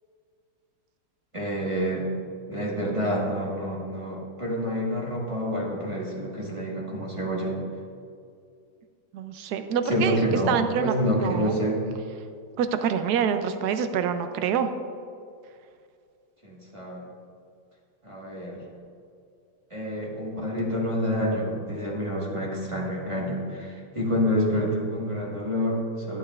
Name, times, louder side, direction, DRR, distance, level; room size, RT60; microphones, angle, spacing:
voice 1, 1.3-2.1 2.5-7.6 9.8-11.9 16.4-17.0 18.0-18.6 19.7-26.2, equal, 20° right, -4 dB, 1.1 m, -28 dB
voice 2, 9.1-10.2 10.5-11.6 12.6-14.7, right 7 dB, 80° right, 9 dB, 0.9 m, -26 dB
12.5 x 11.5 x 2.4 m, 2.3 s
omnidirectional pair, 2.3 m